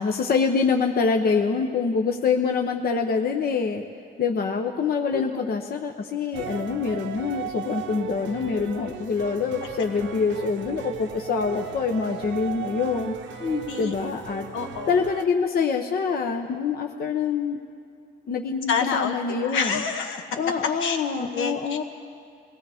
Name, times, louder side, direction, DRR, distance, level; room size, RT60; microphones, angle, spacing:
voice 1, 0.0-3.8 4.2-13.1 13.8-14.5 14.9-17.6 18.3-19.8 20.4-21.8, left 5 dB, 50° left, 4 dB, 0.8 m, -25 dB
voice 2, 5.1-5.4 13.4-13.9 14.5-15.0 18.7-20.3 20.8-21.8, left 5 dB, 80° left, 5 dB, 1.3 m, -28 dB
sound 1, 6.3-15.3, right 8 dB, 70° right, 0.8 m, -36 dB
22.5 x 17.0 x 3.5 m, 2.3 s
cardioid pair, 90°, 20 cm